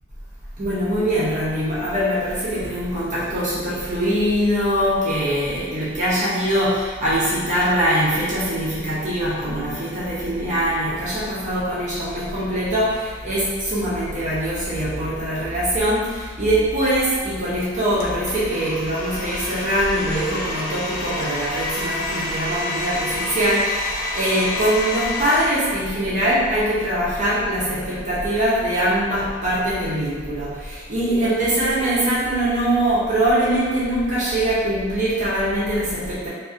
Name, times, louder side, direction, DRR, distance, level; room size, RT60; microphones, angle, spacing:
voice 1, 0.6-36.3, right 1 dB, 35° right, -9 dB, 0.5 m, -22 dB
Domestic sounds home sounds, 18.0-25.4, left 2 dB, 65° left, 0.4 m, -29 dB
2.4 x 2.1 x 2.4 m, 1.5 s
head